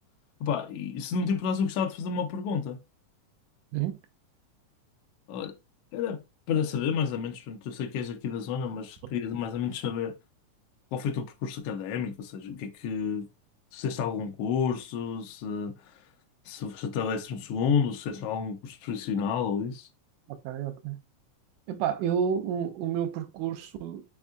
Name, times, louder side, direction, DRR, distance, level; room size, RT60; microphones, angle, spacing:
voice 1, 0.4-2.8 5.3-5.5 5.9-6.2 6.5-10.1 10.9-13.3 13.7-16.0 16.5-19.9, left 6 dB, 85° left, 1.3 m, -30 dB
voice 2, 20.4-21.0 21.7-24.1, right 8 dB, 85° right, 2.2 m, -30 dB
5.3 x 3.6 x 2.2 m
omnidirectional pair, 3.5 m